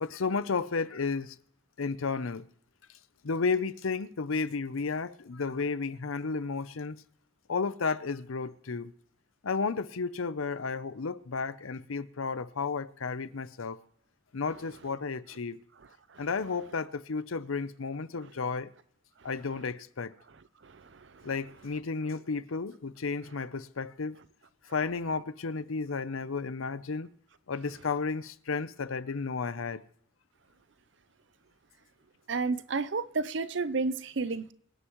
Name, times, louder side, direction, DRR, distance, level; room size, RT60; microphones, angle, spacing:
voice 1, 0.0-1.4 1.8-2.5 3.2-7.0 7.5-8.9 9.4-13.8 14.3-15.6 16.2-18.7 19.2-20.1 21.2-24.2 24.7-27.1 27.5-29.8, left 4 dB, 90° left, 0.7 m, -32 dB
voice 2, 20.6-21.3 32.3-34.5, right 4 dB, 60° right, 0.6 m, -32 dB
24.5 x 9.9 x 3.1 m
head